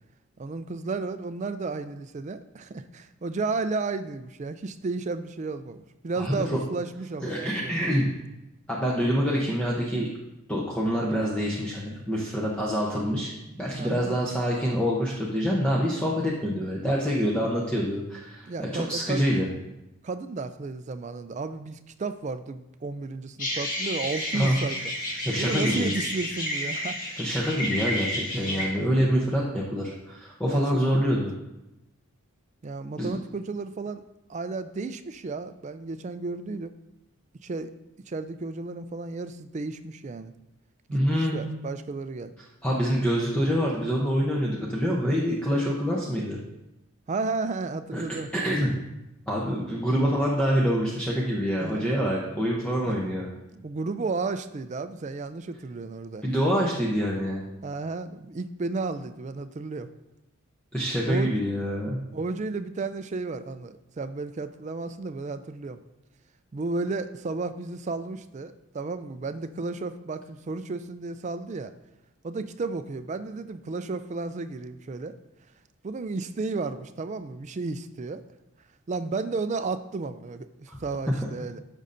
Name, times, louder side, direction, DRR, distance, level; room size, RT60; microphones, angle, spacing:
voice 1, 0.4-7.7 13.7-14.2 18.5-19.2 20.0-27.2 28.4-28.7 30.4-30.8 32.6-34.0 34.3-36.7 37.4-37.7 38.1-40.3 40.9-42.3 47.1-48.3 51.6-51.9 52.8-53.0 53.5-56.3 57.6-59.9 61.1-61.3 62.1-65.8 66.5-71.7 72.2-75.2 75.8-78.2 78.9-81.6, right 3 dB, 35° right, 11 dB, 0.3 m, -33 dB
voice 2, 6.2-6.6 7.2-8.1 8.7-10.1 10.5-13.3 13.6-19.5 24.3-24.6 25.2-25.9 27.2-31.3 33.0-33.2 40.9-41.5 42.6-46.4 47.9-48.0 48.3-48.8 49.3-53.3 56.2-57.4 60.7-62.0 80.7-80.8 81.1-81.2, equal, 5° left, -5 dB, 0.8 m, -26 dB
sound 1, 23.4-28.6, left 1 dB, 40° left, 1.5 m, -31 dB
13.5 x 5.5 x 2.6 m, 0.93 s
head